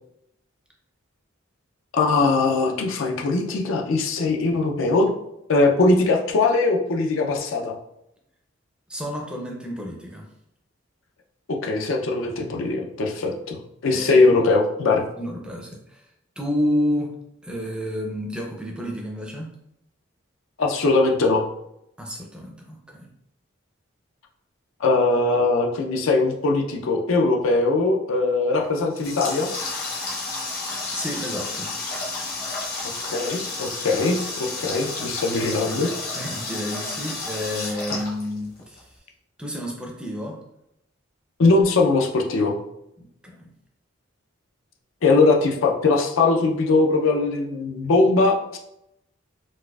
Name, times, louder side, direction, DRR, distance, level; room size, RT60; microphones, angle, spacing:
voice 1, 1.9-5.1 5.5-7.7 11.5-15.0 20.6-21.5 24.8-29.5 32.8-35.9 41.4-42.6 45.0-48.6, left 3 dB, 75° left, 2 dB, 0.5 m, -21 dB
voice 2, 8.9-10.3 13.9-14.5 15.2-16.1 16.4-17.1 17.4-19.5 22.0-23.1 30.9-31.7 35.3-35.4 36.1-38.9 39.4-40.4 43.0-43.5, equal, 5° right, 0 dB, 0.4 m, -30 dB
Water tap faucet, 28.6-38.8, left 3 dB, 45° left, 0.8 m, -31 dB
4.0 x 2.4 x 2.3 m, 0.82 s
head